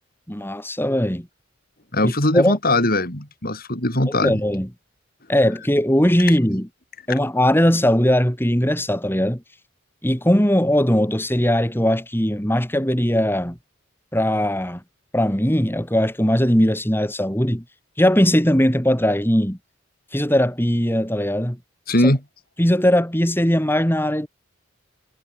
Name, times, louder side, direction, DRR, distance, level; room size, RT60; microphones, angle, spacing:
voice 1, 0.3-1.3 2.0-2.5 4.1-4.7 5.3-6.7 7.1-9.4 10.0-13.6 14.1-14.8 15.1-17.6 18.0-19.6 20.1-21.6 22.6-24.3, equal, 10° left, 4.9 m, -19 dB
voice 2, 1.9-4.4 21.9-22.2, left 1 dB, 45° left, 6.6 m, -20 dB
head